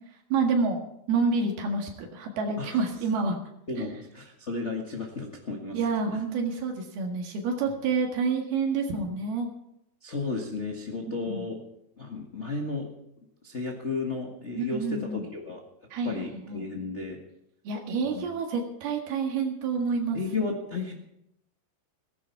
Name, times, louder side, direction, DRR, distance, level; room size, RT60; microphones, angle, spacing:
voice 1, 0.3-0.8 1.1-3.4 3.8-3.9 5.7-9.5 11.3-11.4 14.6-15.2 15.9-16.6 17.7-20.2, right 4 dB, 85° right, 2 dB, 3.8 m, -28 dB
voice 2, 3.7-5.8 7.7-7.8 10.0-11.6 12.0-12.9 13.4-15.6 16.0-17.2 18.0-18.2 20.1-20.9, left 3 dB, 45° left, -1 dB, 0.9 m, -33 dB
16.5 x 16.0 x 4.7 m, 0.79 s
omnidirectional pair, 4.3 m